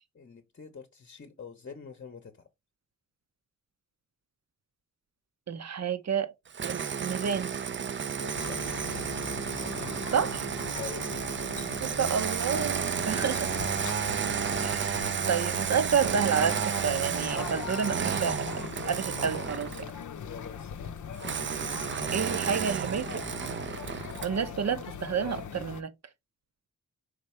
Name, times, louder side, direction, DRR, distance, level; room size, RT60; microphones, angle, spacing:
voice 1, 0.1-2.5 8.2-9.0 10.7-11.3 13.0-13.5 20.2-21.1, left 6 dB, 40° left, 0.8 m, -46 dB
voice 2, 5.5-6.3 6.6-7.5 10.1-10.5 11.8-12.8 13.1-13.5 14.6-18.5 18.9-19.7 22.1-23.2 24.2-25.9, right 7 dB, 55° right, 0.7 m, -30 dB
Engine starting, 6.5-19.9 21.2-24.4, right 7 dB, 40° right, 0.4 m, -32 dB
sound 1, 8.3-25.8, left 7 dB, 65° left, 0.6 m, -41 dB
5.0 x 3.3 x 3.1 m
cardioid pair, 65°, 32 cm